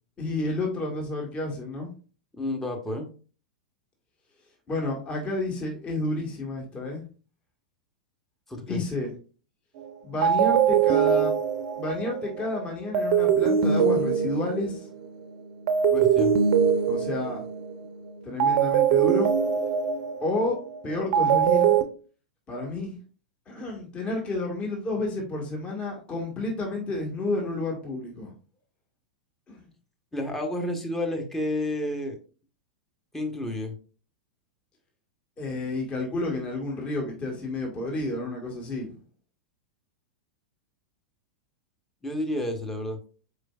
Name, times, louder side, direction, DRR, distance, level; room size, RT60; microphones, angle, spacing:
voice 1, 0.2-1.9 4.7-7.0 8.7-9.1 10.0-11.3 11.7-14.9 16.9-17.4 18.2-19.3 20.2-20.6 20.8-21.7 22.5-22.9 23.5-28.3 29.5-29.7 35.4-38.9, left 2 dB, 25° left, -1 dB, 1.6 m, -30 dB
voice 2, 2.3-3.1 8.5-8.8 15.9-16.4 30.1-32.2 33.1-33.8 42.0-43.0, left 1 dB, 5° left, 2 dB, 1.0 m, -30 dB
sound 1, 9.8-9.9 10.2-15.2 15.7-17.9 18.4-21.8, right 8 dB, 50° right, 0.7 m, -23 dB
4.9 x 4.5 x 2.4 m, 0.37 s
figure-of-eight pair, 95°, 5 cm